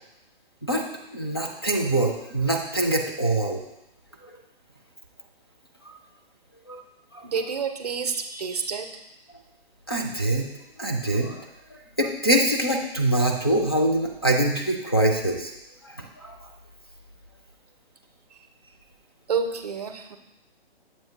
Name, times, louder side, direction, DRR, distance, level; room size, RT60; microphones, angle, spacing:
voice 1, 1.1-3.6 5.9-6.0 6.7-6.8 7.1-7.2 9.9-10.5 10.8-11.5 12.0-15.5 15.8-16.4, right 1 dB, 25° left, 1 dB, 0.4 m, -24 dB
voice 2, 7.2-8.9 18.3-18.4 19.3-20.2, right 5 dB, 40° right, 6 dB, 0.5 m, -29 dB
7.3 x 2.7 x 5.6 m, 0.88 s
hypercardioid pair, 175°, 30 cm